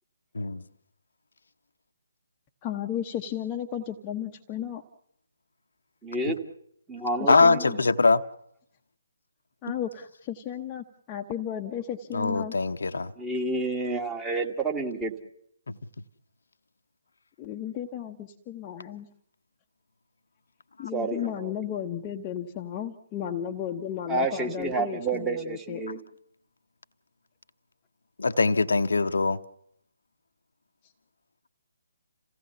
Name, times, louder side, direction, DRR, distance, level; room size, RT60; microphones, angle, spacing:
voice 1, 2.6-4.8 7.2-7.8 9.6-12.5 17.4-19.1 20.8-25.4 25.7-25.8, left 10 dB, 20° left, 1.0 m, -34 dB
voice 2, 6.0-6.4 6.9-7.4 7.6-7.7 13.2-15.1 20.9-21.5 24.1-26.0, right 3 dB, 10° right, 1.8 m, -29 dB
voice 3, 7.3-8.2 12.1-13.1 28.2-29.4, left 3 dB, 60° left, 0.9 m, -22 dB
27.5 x 17.0 x 7.0 m
figure-of-eight pair, 140°, 0 cm